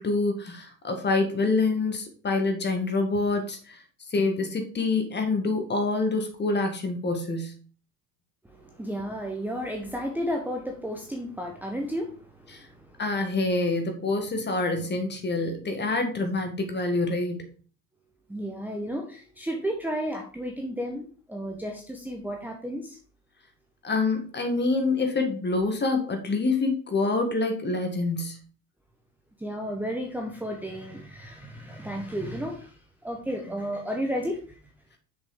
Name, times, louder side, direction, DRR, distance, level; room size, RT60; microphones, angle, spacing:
voice 1, 0.0-3.8 4.1-7.5 12.5-12.6 13.0-17.4 23.8-28.4, left 3 dB, 20° left, 5 dB, 2.0 m, -26 dB
voice 2, 8.4-13.0 18.3-23.0 29.4-34.6, equal, 5° right, 0 dB, 1.2 m, -33 dB
6.8 x 5.6 x 5.1 m, 0.41 s
figure-of-eight pair, 70°, 47 cm